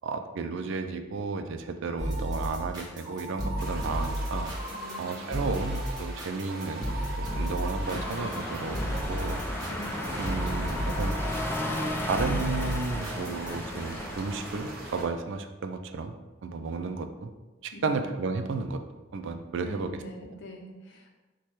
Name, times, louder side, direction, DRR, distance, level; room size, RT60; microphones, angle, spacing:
voice 1, 0.0-4.5 5.0-6.9 7.2-8.8 9.1-9.4 10.2-11.2 12.1-16.1 16.4-17.3 17.6-18.8 19.1-19.9, right 4 dB, 65° right, 7 dB, 0.4 m, -33 dB
sound 1, 2.0-13.6, equal, 20° right, 0.9 m, -33 dB
sound 2, 3.6-15.0, right 1 dB, 50° right, 0.9 m, -43 dB
voice 2, 4.7-5.4 9.6-10.1 17.7-18.1 19.6-21.1, equal, 60° left, 2 dB, 0.7 m, -44 dB
sound 3, 7.8-15.1, left 1 dB, 10° left, 0.4 m, -35 dB
4.7 x 2.3 x 4.3 m, 1.2 s
head